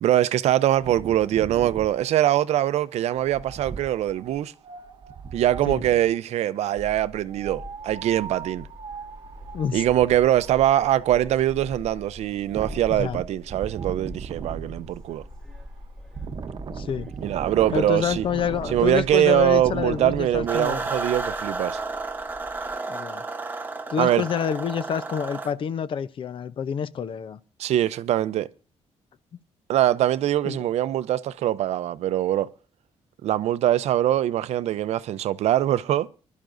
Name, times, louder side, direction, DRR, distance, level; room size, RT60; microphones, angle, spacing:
voice 1, 0.0-4.5 5.3-8.7 9.7-15.2 17.2-18.2 18.7-21.8 24.0-24.2 27.6-28.5 29.7-32.5 33.2-36.1, right 12 dB, 85° right, 0.6 m, -23 dB
Wind, 0.7-6.2 7.2-20.5, right 6 dB, 45° right, 0.9 m, -38 dB
sound 1, 6.7-22.8, left 1 dB, 5° left, 4.2 m, -44 dB
voice 2, 16.7-17.1 17.7-20.8 22.9-23.2 23.9-27.4 30.4-30.6, left 8 dB, 55° left, 0.7 m, -28 dB
sound 2, 20.5-25.5, right 3 dB, 15° right, 1.0 m, -32 dB
23.5 x 12.0 x 2.6 m
cardioid pair, 130°, 11 cm